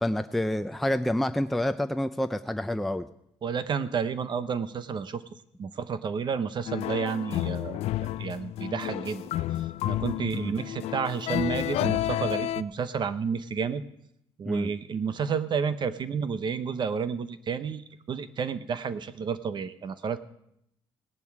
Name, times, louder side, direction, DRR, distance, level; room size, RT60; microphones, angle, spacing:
voice 1, 0.0-3.1 10.3-10.5 14.5-14.7, left 1 dB, ahead, 8 dB, 0.5 m, -28 dB
voice 2, 3.4-5.2 5.6-9.2 9.8-13.8 14.4-20.2, right 6 dB, 45° right, 13 dB, 0.8 m, -31 dB
sound 1, 6.7-12.6, left 14 dB, 75° left, 0.4 m, -30 dB
18.0 x 10.5 x 4.7 m, 0.76 s
cardioid pair, 95°, 11 cm